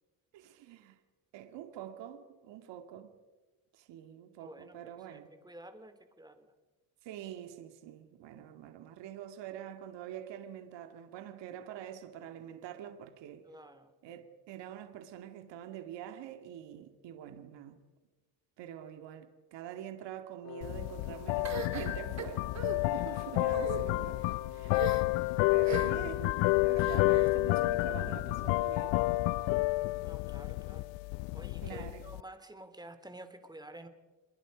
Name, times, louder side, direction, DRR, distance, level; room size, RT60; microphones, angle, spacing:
voice 1, 0.3-1.0 1.3-3.1 3.7-5.3 7.0-13.5 14.0-17.8 18.6-24.9 25.5-29.0 31.6-32.0, right 10 dB, 75° right, 2.2 m, -45 dB
voice 2, 4.4-6.5 13.4-13.9 23.0-23.3 30.0-30.9 31.3-33.9, right 1 dB, 10° right, 2.5 m, -51 dB
Wind instrument woodwind instrument, 20.4-26.2, left 8 dB, 55° left, 1.8 m, -48 dB
sound 1, 20.6-32.2, left 21 dB, 85° left, 0.6 m, -30 dB
sound 2, 21.4-22.8 23.4-23.8 24.7-25.2 25.6-26.1 26.8-27.3, right 5 dB, 40° right, 2.5 m, -39 dB
27.5 x 22.0 x 5.1 m
cardioid pair, 95°, 43 cm